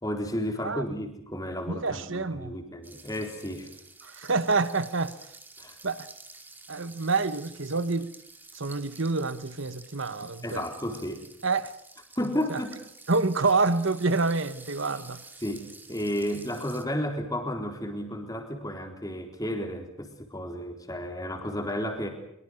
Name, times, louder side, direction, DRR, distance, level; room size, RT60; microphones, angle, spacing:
voice 1, 0.0-3.7 5.6-5.8 10.4-11.2 12.2-12.8 15.4-22.1, equal, 15° left, 4.0 m, -32 dB
voice 2, 1.7-2.5 4.0-5.2 5.8-6.1 6.7-8.1 8.5-10.6 11.4-11.7 12.5-12.6 13.1-15.2, right 3 dB, 70° right, 1.2 m, -27 dB
sound 1, 2.8-16.8, right 3 dB, 10° right, 2.2 m, -50 dB
24.0 x 23.5 x 6.5 m
head